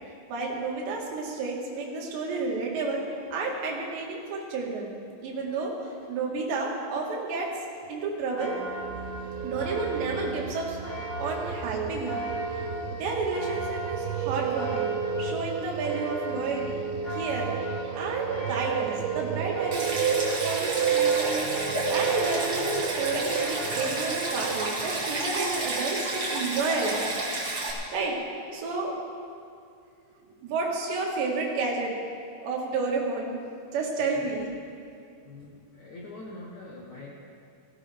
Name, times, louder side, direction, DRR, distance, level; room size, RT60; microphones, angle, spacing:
voice 1, 0.3-4.9 5.2-7.5 7.9-8.6 9.4-10.8 11.2-14.9 15.2-16.8 17.1-17.5 17.9-21.5 21.9-27.0 27.5-28.2 28.5-29.0 30.2-31.9 32.4-33.4 33.7-34.5, right 3 dB, 70° right, -2 dB, 4.0 m, -31 dB
sound 1, 8.4-23.8, right 1 dB, 15° left, 2.6 m, -36 dB
sound 2, 8.7-25.7, right 9 dB, 90° right, 3.1 m, -32 dB
Stream, 19.7-27.7, right 2 dB, 50° right, 1.1 m, -31 dB
voice 2, 34.0-34.3 35.2-37.1, left 2 dB, 80° left, -4 dB, 1.7 m, -44 dB
17.5 x 15.5 x 3.5 m, 2.3 s
omnidirectional pair, 5.4 m